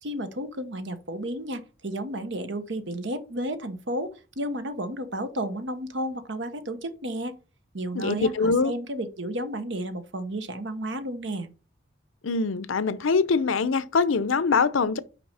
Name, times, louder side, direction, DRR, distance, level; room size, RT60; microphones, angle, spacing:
voice 1, 0.0-7.4 7.7-11.5, right 1 dB, 65° right, 1.0 m, -32 dB
voice 2, 7.9-8.7 12.2-15.0, left 4 dB, 85° left, 0.6 m, -23 dB
6.0 x 4.8 x 5.5 m
head